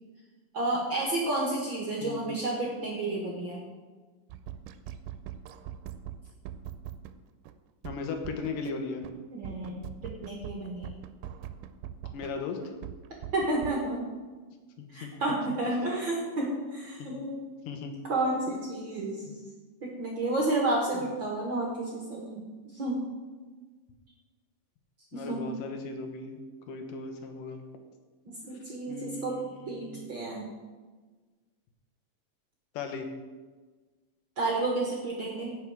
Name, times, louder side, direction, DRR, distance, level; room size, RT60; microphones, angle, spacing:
voice 1, 0.5-3.6 9.3-10.9 13.3-14.1 14.9-17.4 18.0-19.2 19.8-23.0 25.1-25.6 28.2-29.4 29.7-30.5 34.4-35.6, right 2 dB, 50° right, -2 dB, 1.6 m, -31 dB
voice 2, 2.0-2.3 7.8-9.0 12.1-12.7 14.9-15.1 17.0-17.1 17.7-18.0 21.0-21.1 25.1-26.4 26.7-27.6 28.9-30.0 32.7-33.1, left 4 dB, 75° left, 5 dB, 2.7 m, -37 dB
sound 1, 4.3-7.1 7.5-7.6 7.8-8.7 9.0-9.1 9.4-12.3 12.6-13.8, right 11 dB, 80° right, 2.2 m, -41 dB
16.5 x 6.0 x 4.9 m, 1.3 s
omnidirectional pair, 3.9 m